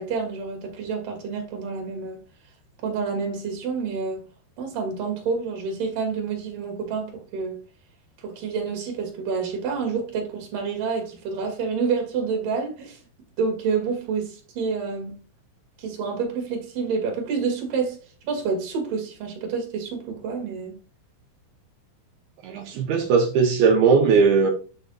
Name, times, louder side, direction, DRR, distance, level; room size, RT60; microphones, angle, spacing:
voice 1, 0.0-2.2 2.8-4.2 4.6-7.6 8.2-13.0 13.4-15.2 15.8-18.0 18.2-20.7, right 5 dB, 55° right, 3.3 m, -28 dB
voice 2, 22.4-24.5, right 5 dB, 85° right, 2.1 m, -18 dB
11.5 x 5.7 x 2.4 m
omnidirectional pair, 5.5 m